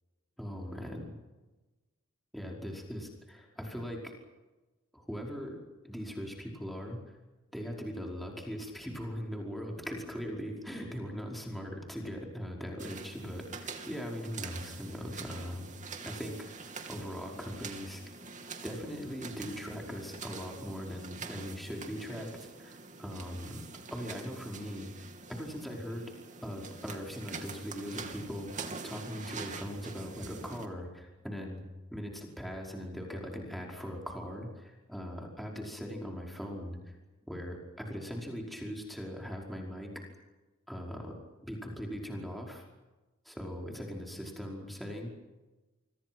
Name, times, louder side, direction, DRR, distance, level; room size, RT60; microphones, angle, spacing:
voice 1, 0.4-1.1 2.3-4.1 4.9-5.6 5.8-7.0 7.5-15.7 16.0-18.0 18.6-23.6 23.9-26.1 26.4-31.6 31.9-37.0 37.3-39.9 40.7-41.1 41.4-42.6 43.2-45.1, equal, ahead, -1 dB, 5.1 m, -40 dB
sound 1, 12.8-30.7, right 4 dB, 35° right, 3.0 m, -45 dB
29.5 x 25.5 x 6.2 m, 1.1 s
head